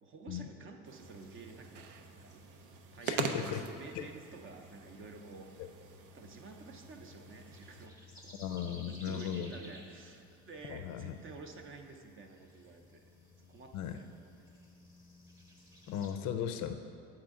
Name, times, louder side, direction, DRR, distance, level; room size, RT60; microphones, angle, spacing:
voice 1, 0.0-2.3 2.9-5.5 6.1-8.4 8.9-13.1 13.4-14.1, right 4 dB, 35° right, 4 dB, 0.6 m, -51 dB
sound 1, 0.9-7.9, right 6 dB, 85° right, 0.6 m, -43 dB
sound 2, 1.0-16.1, left 2 dB, 10° right, 0.9 m, -57 dB
voice 2, 3.1-3.6 3.9-4.1 8.4-9.5 10.7-11.1 13.7-14.0 15.9-16.8, left 9 dB, 55° left, 8 dB, 0.4 m, -37 dB
7.5 x 4.5 x 3.6 m, 2.4 s
supercardioid pair, 80°, 34 cm